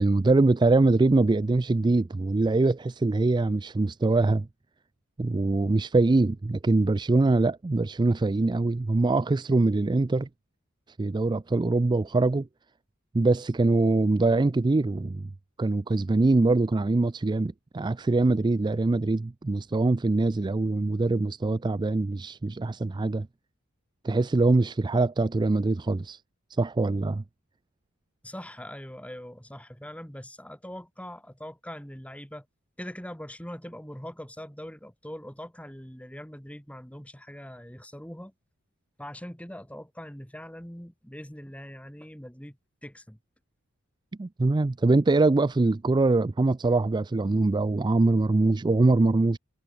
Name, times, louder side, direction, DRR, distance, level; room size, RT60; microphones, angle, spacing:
voice 1, 0.0-4.5 5.2-10.3 11.0-12.5 13.1-15.3 15.6-23.3 24.0-26.2 26.5-27.2 44.2-49.4, right 2 dB, 20° right, 0.4 m, -23 dB
voice 2, 28.2-32.5 32.8-38.3 39.0-42.6 42.8-43.2, equal, 5° left, 5.9 m, -42 dB
head